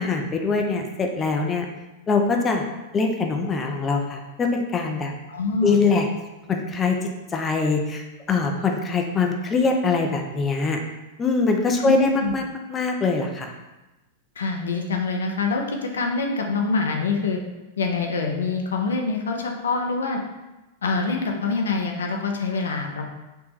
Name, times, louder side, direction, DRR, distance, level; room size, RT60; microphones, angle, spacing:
voice 1, 0.0-1.7 2.1-2.6 2.9-5.1 5.6-6.1 6.5-10.8 11.2-12.4 12.7-13.5, left 4 dB, 25° left, 3 dB, 0.5 m, -23 dB
voice 2, 5.3-5.8 11.8-12.3 14.4-17.4 17.8-20.2 20.8-23.0, left 4 dB, 85° left, 2 dB, 0.5 m, -25 dB
3.4 x 2.9 x 3.1 m, 1.0 s
hypercardioid pair, 105°, 0 cm